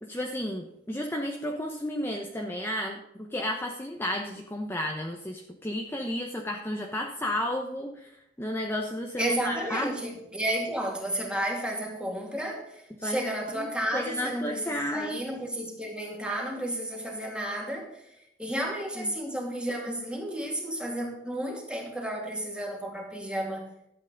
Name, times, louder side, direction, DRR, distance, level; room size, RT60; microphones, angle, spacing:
voice 1, 0.0-8.1 8.4-9.9 13.0-15.2 18.5-18.6 19.0-19.1, left 1 dB, 15° left, 1 dB, 1.0 m, -32 dB
voice 2, 9.2-17.9 18.4-23.7, right 1 dB, 5° right, 0 dB, 2.4 m, -32 dB
12.5 x 8.4 x 3.9 m, 0.82 s
head